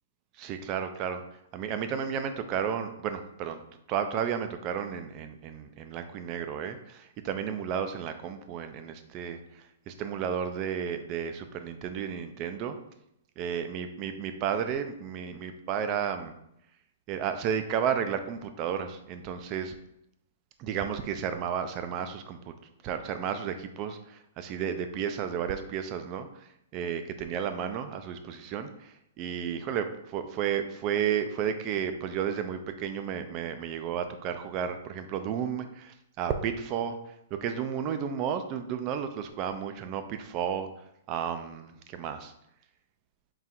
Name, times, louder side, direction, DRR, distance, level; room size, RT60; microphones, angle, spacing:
voice 1, 0.4-1.2 1.5-3.6 3.9-9.4 9.9-12.8 13.4-16.3 17.1-19.7 20.6-22.5 22.8-26.3 26.7-28.9 29.2-37.0 37.4-40.7 41.1-42.3, right 8 dB, 30° right, 8 dB, 0.4 m, -32 dB
3.8 x 2.4 x 4.3 m, 0.78 s
hypercardioid pair, 155°, 0 cm